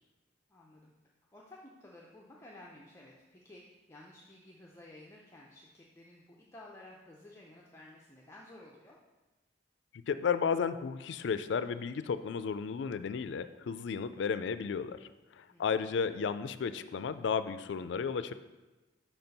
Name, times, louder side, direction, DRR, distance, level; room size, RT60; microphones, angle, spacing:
voice 1, 0.5-0.9 1.3-9.0 15.5-15.9, left 1 dB, 15° left, -4 dB, 0.6 m, -54 dB
voice 2, 10.1-18.3, left 6 dB, 75° left, 12 dB, 0.3 m, -33 dB
5.8 x 4.4 x 5.3 m, 1.2 s
head